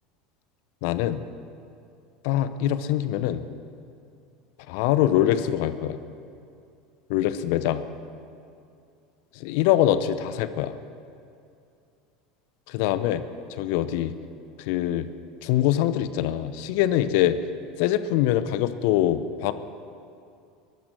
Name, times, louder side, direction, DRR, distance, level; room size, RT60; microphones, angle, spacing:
voice 1, 0.8-1.2 2.2-3.4 4.7-6.0 7.1-7.8 9.4-10.7 12.7-13.2 13.6-14.1 14.7-15.1 15.4-17.4 17.8-19.5, left 12 dB, 60° left, 13 dB, 0.7 m, -23 dB
19.0 x 12.0 x 4.9 m, 2.5 s
hypercardioid pair, 75°, 0 cm